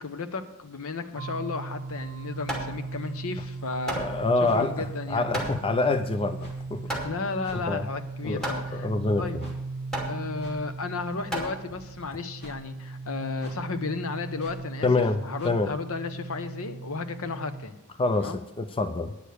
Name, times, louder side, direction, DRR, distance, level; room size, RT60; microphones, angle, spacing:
voice 1, 0.0-4.0 4.5-5.3 7.0-8.9 9.2-9.4 10.1-14.9 15.2-17.7 18.2-18.4, left 4 dB, 65° left, 10 dB, 0.9 m, -33 dB
sound 1, 1.2-17.7, right 3 dB, 50° right, 0.3 m, -38 dB
Hammer, 1.9-12.1, right 1 dB, 5° left, 2.4 m, -36 dB
voice 2, 4.0-6.9 7.5-7.9 8.2-8.4 8.7-9.5 14.8-15.2 15.4-15.7 18.0-19.1, left 3 dB, 25° left, 10 dB, 0.5 m, -26 dB
sound 2, 4.4-4.6 5.4-5.5 6.4-6.6 7.4-7.6 8.4-8.6 9.4-9.6 10.4-10.6 11.4-11.5 12.4-12.6 13.4-13.6 14.4-14.6 15.4-15.6, equal, 50° left, 2.4 m, -47 dB
9.8 x 6.7 x 8.2 m, 0.93 s
head